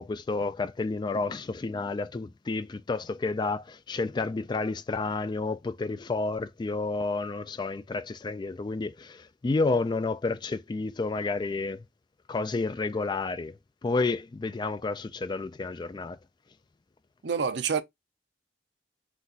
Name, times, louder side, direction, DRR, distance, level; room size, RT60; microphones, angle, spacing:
voice 1, 0.0-11.8 12.3-13.5 13.8-16.2, left 3 dB, 25° left, 0.3 m, -30 dB
voice 2, 17.2-17.8, right 6 dB, 70° right, 0.6 m, -27 dB
4.1 x 2.5 x 3.8 m
head